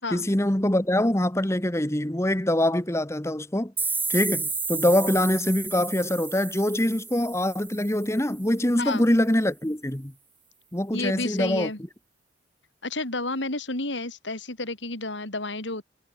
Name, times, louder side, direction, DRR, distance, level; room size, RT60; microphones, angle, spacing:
voice 1, 0.1-3.7 4.1-10.1 10.7-11.7, left 1 dB, 15° left, 1.4 m, -24 dB
sound 1, 3.8-8.4, right 4 dB, 10° right, 3.5 m, -32 dB
voice 2, 10.9-11.8 12.8-15.8, left 2 dB, 80° left, 5.4 m, -31 dB
head